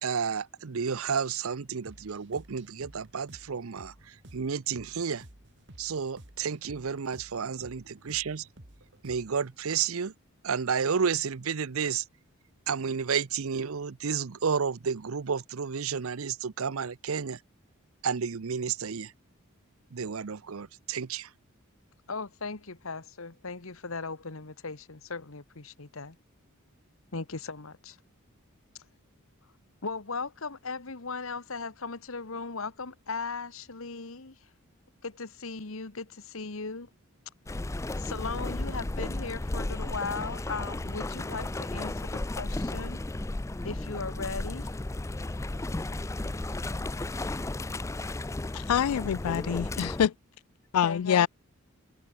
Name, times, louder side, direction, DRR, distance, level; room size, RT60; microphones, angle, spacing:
voice 1, 0.0-5.2 5.8-8.5 9.0-10.1 10.4-12.0 12.7-17.4 18.0-19.1 19.9-21.3, right 6 dB, 75° right, 0.7 m, -31 dB
sound 1, 1.8-9.5, right 1 dB, 55° right, 3.2 m, -53 dB
voice 2, 22.1-26.2 27.1-28.0 29.8-34.4 35.0-36.9 38.0-43.0 43.6-44.7 50.8-51.3, left 4 dB, 70° left, 1.4 m, -37 dB
sound 2, 37.5-50.1, left 2 dB, 15° left, 0.4 m, -34 dB
voice 3, 48.5-50.1 50.7-51.3, left 8 dB, 85° left, 0.4 m, -25 dB
open air
head